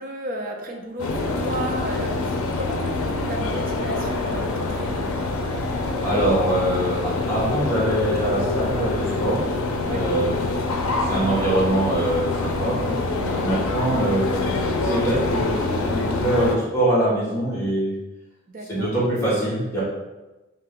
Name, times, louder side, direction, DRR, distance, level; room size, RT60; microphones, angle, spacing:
voice 1, 0.0-5.0 9.8-10.0 13.4-13.6 18.5-18.9, right 1 dB, 40° right, 2 dB, 0.4 m, -34 dB
sound 1, 1.0-16.6, left 2 dB, 85° left, 0.5 m, -25 dB
voice 2, 6.0-9.5 9.9-10.6 11.0-14.3 14.8-17.9 18.7-19.8, right 1 dB, 10° left, -8 dB, 1.2 m, -23 dB
2.8 x 2.8 x 3.6 m, 1.1 s
head